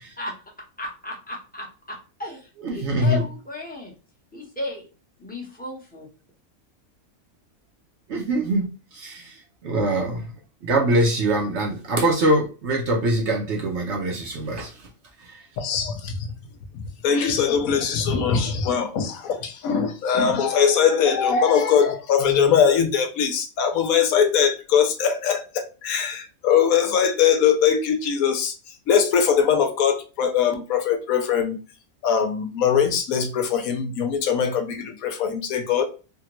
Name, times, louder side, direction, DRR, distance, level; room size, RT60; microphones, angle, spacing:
voice 1, 0.8-3.9 4.3-4.9 5.2-6.1, left 2 dB, 10° left, 0.7 m, -34 dB
voice 2, 2.6-3.2 8.1-8.7 8.9-9.3 9.6-10.2 10.6-14.7, right 1 dB, 60° right, 0.8 m, -23 dB
voice 3, 15.6-16.3 16.7-28.5 28.9-31.6 32.0-35.9, left 7 dB, 80° left, 1.1 m, -21 dB
3.5 x 2.2 x 2.9 m
omnidirectional pair, 1.5 m